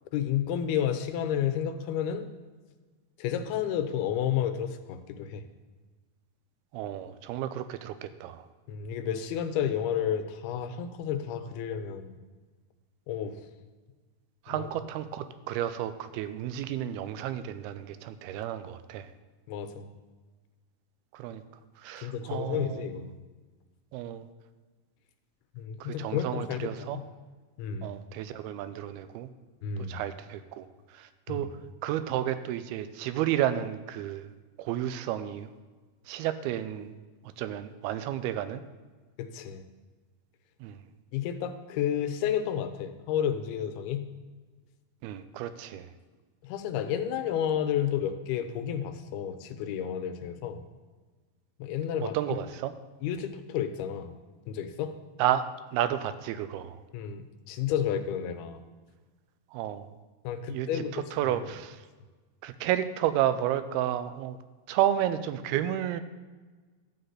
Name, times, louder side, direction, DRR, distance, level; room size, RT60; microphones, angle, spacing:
voice 1, 0.1-2.3 3.2-5.4 8.7-12.2 13.1-13.4 14.5-14.7 19.5-19.9 22.0-23.2 25.6-27.0 27.6-27.9 29.6-30.0 31.3-31.5 39.2-39.6 41.1-44.1 46.4-50.6 51.6-52.2 53.0-54.1 54.5-55.0 56.9-58.6 60.2-61.5, left 9 dB, 85° left, 8 dB, 2.7 m, -31 dB
voice 2, 6.7-8.5 14.5-19.1 21.1-21.4 21.8-22.9 23.9-24.3 25.8-27.0 27.8-29.3 29.9-30.7 30.9-31.5 31.8-34.3 34.6-35.5 36.1-36.9 37.4-38.6 40.6-40.8 45.0-45.9 52.0-52.7 55.2-55.4 55.7-56.8 59.5-59.9 60.5-61.8 62.4-64.4 64.7-66.0, right 11 dB, 85° right, 11 dB, 2.5 m, -31 dB
12.0 x 4.0 x 7.9 m, 1.3 s
omnidirectional pair, 4.5 m